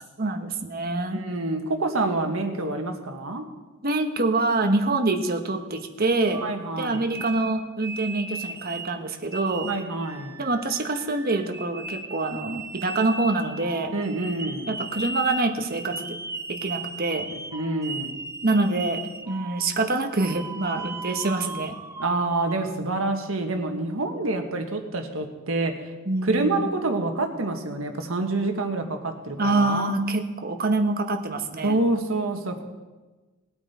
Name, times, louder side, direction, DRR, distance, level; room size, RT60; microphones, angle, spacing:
voice 1, 0.2-1.2 3.8-6.5 6.8-9.7 10.4-13.9 14.7-16.2 16.5-17.3 18.4-21.8 26.0-26.7 29.4-31.8, right 2 dB, 45° right, 5 dB, 1.2 m, -25 dB
voice 2, 1.1-3.4 6.4-7.1 9.7-10.4 13.9-14.7 17.5-18.2 22.0-25.9 26.2-29.9 31.6-32.6, right 2 dB, 80° right, 4 dB, 1.6 m, -27 dB
sound 1, 6.3-9.0 9.3-22.7, right 3 dB, 15° right, 0.6 m, -37 dB
19.5 x 8.8 x 4.4 m, 1.2 s
head